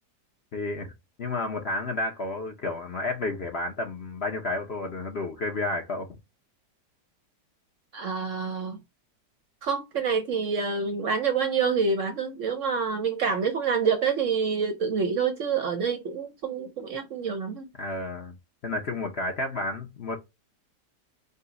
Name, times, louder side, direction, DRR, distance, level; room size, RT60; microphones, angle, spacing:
voice 1, 0.5-0.9 1.2-6.1 17.8-18.3 18.6-20.2, left 2 dB, 55° left, 0.8 m, -31 dB
voice 2, 7.9-8.8 9.6-17.7, right 5 dB, 60° right, 0.8 m, -27 dB
5.4 x 2.2 x 3.9 m
omnidirectional pair, 1.8 m